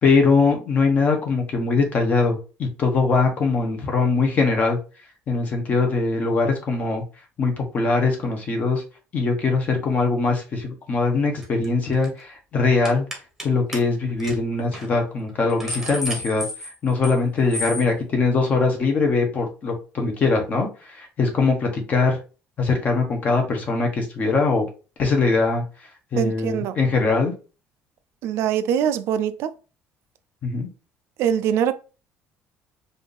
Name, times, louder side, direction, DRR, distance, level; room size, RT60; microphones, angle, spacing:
voice 1, 0.0-4.8 5.3-7.0 7.4-8.8 9.1-13.1 13.4-16.4 16.8-22.2 22.6-24.7 25.0-25.6 26.1-27.3 30.4-30.7, left 4 dB, 35° left, 1.1 m, -21 dB
sound 1, 11.4-11.7 11.9-12.2 12.8-13.5 13.7-13.8 14.2-14.4 14.7-14.9 15.3-17.2 17.5-17.9, left 1 dB, 5° right, 1.1 m, -32 dB
voice 2, 26.2-26.8 28.2-29.5 31.2-31.7, right 9 dB, 65° right, 0.4 m, -23 dB
4.6 x 2.7 x 3.3 m
cardioid pair, 155°, 5 cm